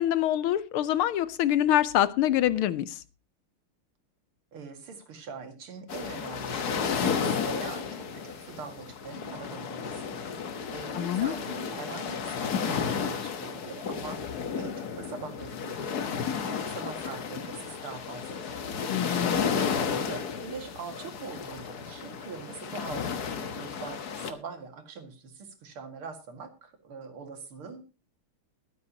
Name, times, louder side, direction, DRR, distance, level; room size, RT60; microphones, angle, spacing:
voice 1, 0.0-2.9 10.9-11.3 18.9-19.5, left 12 dB, 80° left, 16 dB, 1.6 m, -25 dB
voice 2, 4.5-10.4 10.7-15.9 16.3-18.6 19.3-27.9, right 5 dB, 75° right, 6 dB, 2.9 m, -42 dB
sound 1, 5.9-24.3, left 6 dB, 50° left, 1.6 m, -33 dB
21.5 x 9.4 x 2.9 m, 0.30 s
omnidirectional pair, 2.4 m